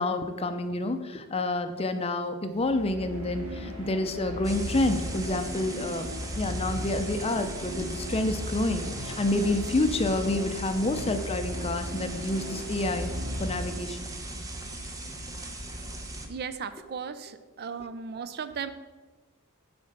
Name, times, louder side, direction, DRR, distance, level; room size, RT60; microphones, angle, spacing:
voice 1, 0.0-6.1 6.4-13.1 13.4-14.0, left 2 dB, 25° left, 8 dB, 0.5 m, -28 dB
sound 1, 2.5-14.2, equal, 80° right, 1.7 m, -37 dB
sound 2, 4.4-16.3, right 2 dB, 15° right, 0.7 m, -39 dB
voice 2, 16.3-18.7, right 6 dB, 45° right, 12 dB, 0.4 m, -36 dB
7.4 x 4.4 x 6.6 m, 1.2 s
head